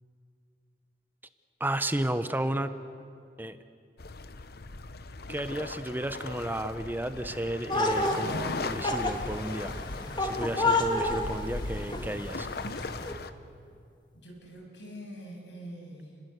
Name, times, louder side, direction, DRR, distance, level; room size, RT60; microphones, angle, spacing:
voice 1, 1.6-2.7 3.4-3.6 5.3-9.7 10.2-12.5, right 1 dB, 10° right, 10 dB, 0.9 m, -33 dB
sound 1, 4.0-13.3, left 3 dB, 60° left, 1.0 m, -38 dB
sound 2, 7.7-13.1, left 2 dB, 25° left, 2.0 m, -30 dB
voice 2, 14.1-16.2, equal, 80° left, 1 dB, 7.4 m, -44 dB
29.5 x 21.0 x 8.2 m, 2.4 s
head